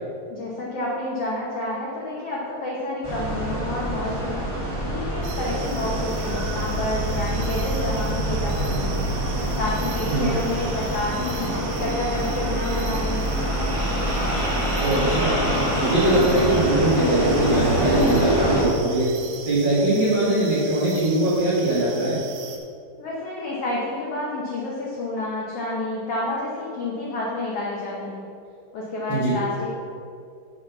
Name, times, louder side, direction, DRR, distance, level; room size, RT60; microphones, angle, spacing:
voice 1, 0.3-4.4 4.9-9.0 9.6-13.3 23.0-28.2 28.7-29.7, left 2 dB, 90° left, -4 dB, 1.3 m, -29 dB
sound 1, 3.0-18.6, right 1 dB, 10° right, 1.0 m, -25 dB
sound 2, 5.2-22.6, right 7 dB, 75° right, 2.4 m, -40 dB
voice 2, 14.8-15.4 15.8-19.1 19.4-22.2 29.1-29.3, right 1 dB, 55° right, -9 dB, 1.2 m, -21 dB
6.3 x 5.7 x 7.0 m, 2.4 s
omnidirectional pair, 4.5 m